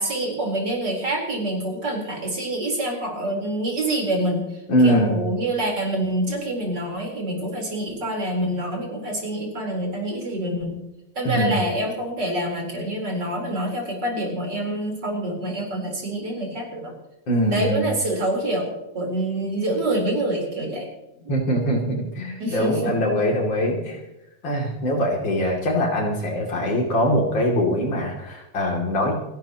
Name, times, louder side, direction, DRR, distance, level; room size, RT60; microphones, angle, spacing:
voice 1, 0.0-10.8 11.2-16.9 17.5-20.9 22.4-23.0, right 1 dB, 60° right, -1 dB, 4.7 m, -26 dB
voice 2, 4.7-5.2 11.3-11.6 17.3-17.9 21.3-24.0 24.4-29.2, equal, 80° left, 0 dB, 3.6 m, -22 dB
28.0 x 11.5 x 3.0 m, 0.95 s
omnidirectional pair, 2.1 m